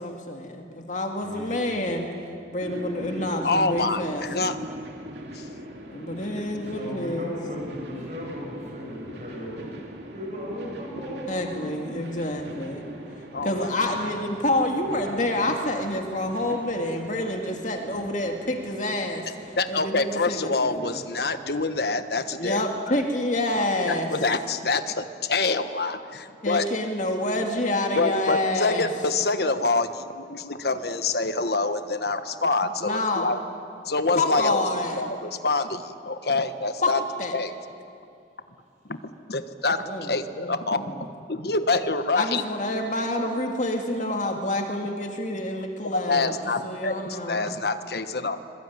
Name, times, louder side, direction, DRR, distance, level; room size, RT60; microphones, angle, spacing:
voice 1, 0.0-2.1 2.5-4.5 5.9-7.3 11.3-12.8 13.4-21.0 22.4-24.1 26.4-28.8 32.8-33.3 34.2-35.0 36.8-36.9 37.2-37.4 39.9-40.1 40.4-41.0 42.1-46.3 46.6-47.5, left 1 dB, 40° left, 2 dB, 2.2 m, -28 dB
voice 2, 1.2-1.9 6.6-9.7 10.1-11.7 30.6-30.8, equal, 40° right, -1 dB, 7.0 m, -37 dB
sound 1, 2.6-21.8, equal, 65° right, 2.9 m, -42 dB
voice 3, 3.4-4.7 5.3-5.5 6.4-6.5 9.1-9.2 13.3-13.7 19.6-23.0 23.8-26.7 28.0-33.4 33.8-37.0 37.3-37.5 38.9-42.4 45.9-48.4, left 3 dB, 55° left, 9 dB, 1.3 m, -26 dB
25.5 x 22.0 x 9.5 m, 2.5 s
head